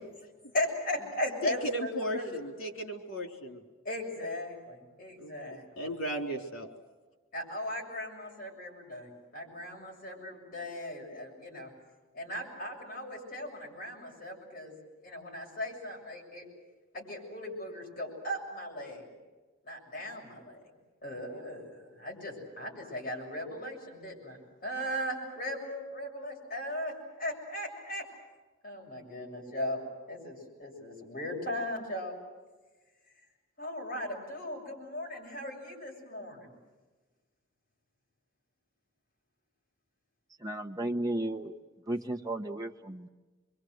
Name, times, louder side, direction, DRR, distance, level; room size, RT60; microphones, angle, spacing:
voice 1, 0.5-2.4 3.8-5.6 7.3-11.7 12.1-14.8 15.0-16.4 16.9-19.1 19.6-20.6 21.0-28.1 28.6-29.8 30.1-32.1 33.6-36.5, left 1 dB, 45° left, -1 dB, 6.9 m, -38 dB
voice 2, 1.4-3.6 5.2-5.3 5.8-6.7, equal, 85° left, 3 dB, 3.7 m, -35 dB
voice 3, 40.4-41.5 41.9-43.1, right 1 dB, 20° right, 1 dB, 1.2 m, -34 dB
27.5 x 23.5 x 7.9 m, 1.3 s
head